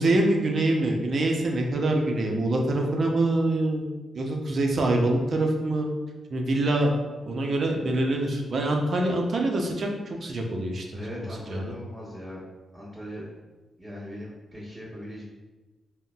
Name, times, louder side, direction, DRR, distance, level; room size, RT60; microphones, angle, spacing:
voice 1, 0.0-3.9 4.1-5.9 6.3-6.9 7.2-11.2 11.5-11.6, right 2 dB, 60° right, 1 dB, 0.5 m, -25 dB
voice 2, 10.9-12.5 12.7-13.3 13.8-15.2, equal, ahead, -13 dB, 1.1 m, -39 dB
3.8 x 2.1 x 2.2 m, 1.2 s
cardioid pair, 60°, 0 cm